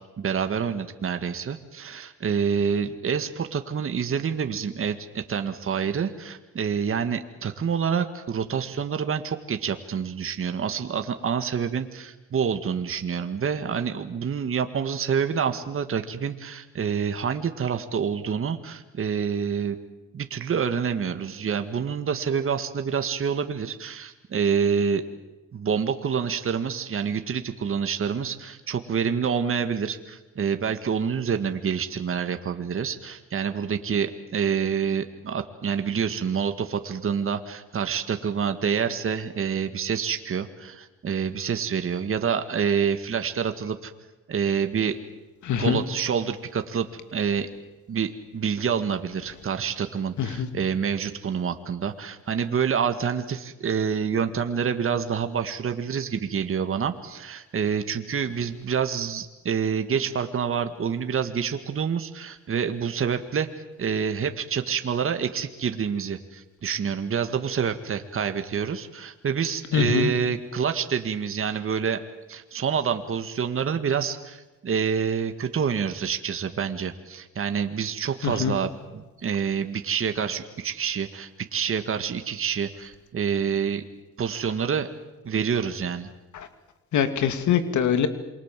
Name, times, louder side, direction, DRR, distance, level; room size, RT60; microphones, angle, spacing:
voice 1, 0.2-19.8 20.1-25.0 25.5-43.9 44.3-45.0 45.6-46.9 47.1-47.5 47.9-63.5 63.8-72.0 72.3-83.8 84.2-84.9 85.2-86.1, right 7 dB, 45° right, 8 dB, 1.9 m, -27 dB
voice 2, 45.4-45.8 50.2-50.5 69.7-70.1 78.2-78.5 86.3-86.5 86.9-88.1, left 8 dB, 70° left, 9 dB, 2.6 m, -23 dB
27.5 x 23.5 x 7.6 m, 1.1 s
cardioid pair, 90°, 30 cm